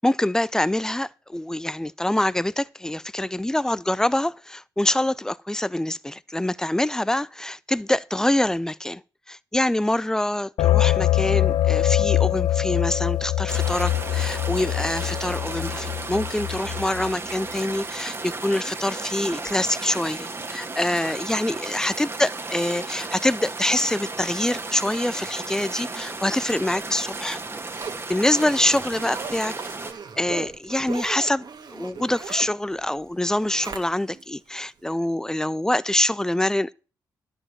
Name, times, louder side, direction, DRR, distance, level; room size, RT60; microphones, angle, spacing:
voice 1, 0.0-9.0 9.3-27.4 28.1-29.6 30.2-36.7, left 1 dB, 5° left, 0.5 m, -25 dB
sound 1, 10.6-17.1, left 13 dB, 85° left, 0.4 m, -23 dB
sound 2, 13.5-29.9, right 3 dB, 30° right, 1.7 m, -34 dB
Zipper (clothing), 26.6-34.2 34.7-34.8, right 5 dB, 60° right, 1.8 m, -39 dB
11.0 x 5.3 x 7.2 m
supercardioid pair, 55°, 8 cm